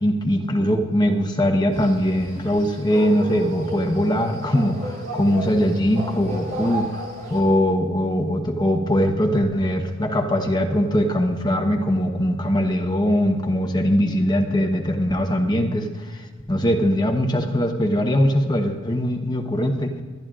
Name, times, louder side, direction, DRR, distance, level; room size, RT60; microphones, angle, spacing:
voice 1, 0.0-7.0 7.3-19.9, equal, 20° left, 3 dB, 1.1 m, -21 dB
sound 1, 1.7-7.4, right 1 dB, 40° right, 4.2 m, -34 dB
23.5 x 10.5 x 2.5 m, 1.5 s
head